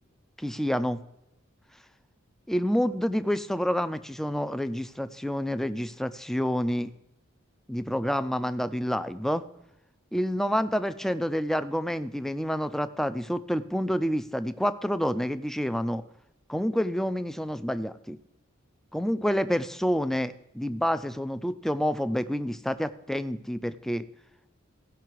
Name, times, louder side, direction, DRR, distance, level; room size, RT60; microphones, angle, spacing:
voice 1, 0.4-1.0 2.5-6.9 7.7-9.4 10.1-16.0 16.5-18.2 18.9-24.1, equal, ahead, 12 dB, 0.4 m, -28 dB
16.5 x 5.9 x 4.6 m, 0.88 s
head